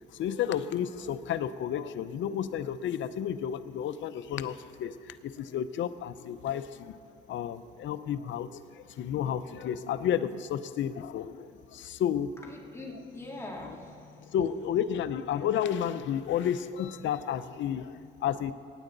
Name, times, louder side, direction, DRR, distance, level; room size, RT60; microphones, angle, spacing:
voice 1, 0.1-7.0 7.3-12.3 13.6-13.7 14.3-18.5, left 9 dB, 75° left, 12 dB, 0.7 m, -32 dB
voice 2, 12.4-14.4, left 2 dB, 15° left, -2 dB, 2.8 m, -43 dB
24.0 x 10.0 x 4.0 m, 2.4 s
cardioid pair, 90°, 20 cm